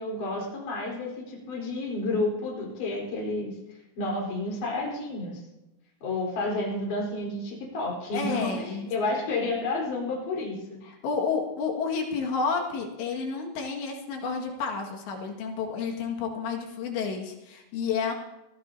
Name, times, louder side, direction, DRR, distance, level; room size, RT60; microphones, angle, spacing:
voice 1, 0.0-3.6 4.0-5.4 6.0-10.8, left 2 dB, 50° left, -3 dB, 5.6 m, -30 dB
voice 2, 8.1-8.9 10.9-18.1, left 5 dB, 75° left, 1 dB, 4.2 m, -30 dB
22.5 x 15.5 x 2.8 m, 0.95 s
omnidirectional pair, 5.1 m